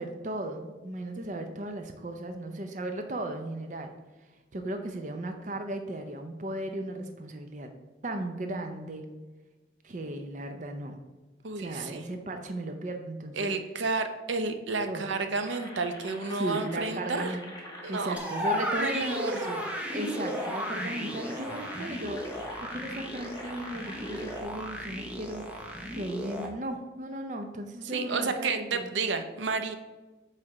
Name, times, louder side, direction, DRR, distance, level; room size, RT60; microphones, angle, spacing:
voice 1, 0.0-3.9 4.5-7.7 8.0-9.0 9.8-11.0 11.6-13.5 14.8-15.1 16.3-17.4 17.9-22.4 22.7-28.9, right 1 dB, 40° right, 6 dB, 0.5 m, -36 dB
voice 2, 11.4-12.1 13.3-17.4 17.8-18.2 18.8-19.5 27.8-29.7, right 4 dB, 85° right, 8 dB, 0.6 m, -31 dB
sound 1, 15.4-24.4, left 1 dB, 20° left, 1.2 m, -45 dB
sound 2, 18.2-26.5, equal, 5° right, 0.7 m, -34 dB
8.4 x 3.3 x 4.9 m, 1.2 s
head